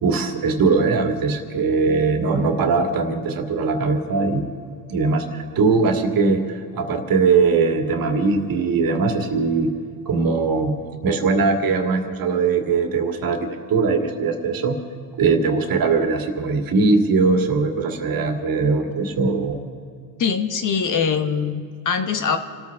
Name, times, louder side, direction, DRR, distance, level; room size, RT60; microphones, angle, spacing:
voice 1, 0.0-4.5 4.9-9.7 10.1-10.7 11.0-14.8 15.2-19.6, right 4 dB, 50° right, 4 dB, 2.1 m, -20 dB
voice 2, 20.2-22.4, left 6 dB, 45° left, 7 dB, 1.2 m, -22 dB
27.5 x 14.0 x 3.5 m, 2.3 s
cardioid pair, 110°, 44 cm